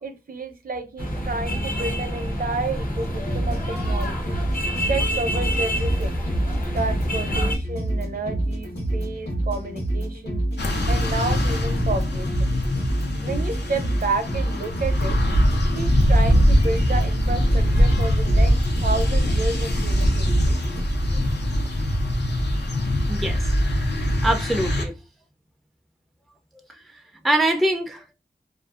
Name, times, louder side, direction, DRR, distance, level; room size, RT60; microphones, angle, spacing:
voice 1, 0.0-4.4 4.8-6.2 6.7-10.4 10.9-12.6 13.2-15.3 15.7-18.5 18.8-20.6, right 3 dB, 55° right, 0.5 m, -30 dB
sound 1, 1.0-7.6, equal, 55° left, 0.7 m, -27 dB
sound 2, 3.0-20.8, right 1 dB, 75° left, 1.1 m, -28 dB
sound 3, 10.6-24.9, equal, 90° left, 0.5 m, -22 dB
voice 2, 23.1-23.5 24.2-24.9 26.7-28.1, right 1 dB, ahead, 0.3 m, -24 dB
2.5 x 2.3 x 2.3 m
wide cardioid pair, 75°, 17 cm